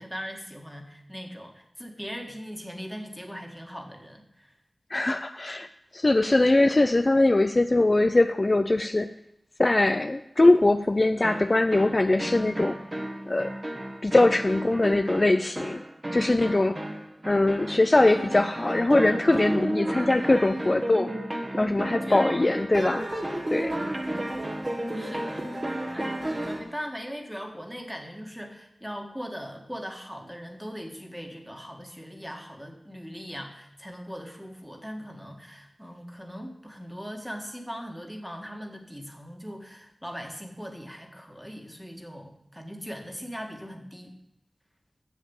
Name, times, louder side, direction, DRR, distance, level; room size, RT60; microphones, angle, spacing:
voice 1, 0.0-4.6 16.2-16.5 21.5-22.5 23.5-23.8 24.9-25.5 25.9-44.2, equal, ahead, 3 dB, 1.7 m, -40 dB
voice 2, 4.9-9.1 9.6-12.8 13.3-13.5 14.0-15.8 16.1-16.8 17.3-21.1 21.6-23.1 23.5-23.8, left 2 dB, 40° left, 9 dB, 0.4 m, -22 dB
sound 1, 11.2-26.7, right 1 dB, 30° right, 1.4 m, -32 dB
7.2 x 7.1 x 7.1 m, 0.81 s
wide cardioid pair, 55°, 0 cm